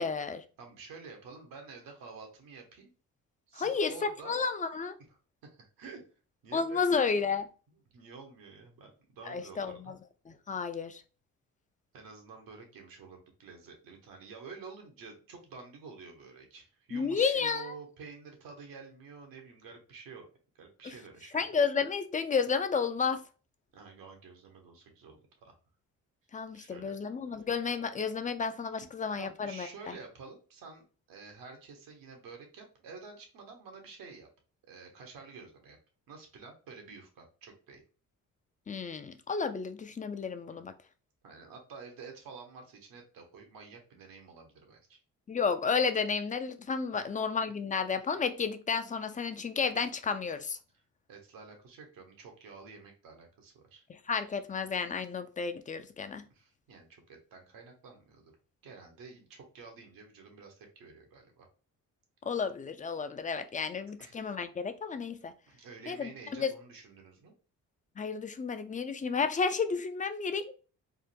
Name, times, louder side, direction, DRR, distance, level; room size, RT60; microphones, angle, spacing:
voice 1, 0.0-0.4 3.6-4.9 6.5-7.5 9.3-10.0 10.3-11.0 16.9-17.7 21.3-23.2 26.3-29.7 38.7-40.7 45.3-50.6 54.1-56.3 62.3-65.3 65.9-66.5 68.0-70.5, left 5 dB, 25° left, 0.4 m, -32 dB
voice 2, 0.6-2.9 3.5-4.4 5.1-6.0 6.4-6.9 7.9-9.9 11.9-20.3 20.5-21.4 23.7-25.6 26.5-27.0 27.3-27.5 29.2-34.3 34.7-35.8 36.1-37.8 40.5-40.6 41.2-45.0 46.9-47.2 50.7-50.8 51.1-53.8 56.3-58.3 58.6-61.5 64.0-64.2 65.5-67.3, right 4 dB, 80° right, 1.1 m, -50 dB
3.6 x 2.1 x 2.6 m
cardioid pair, 70°, 34 cm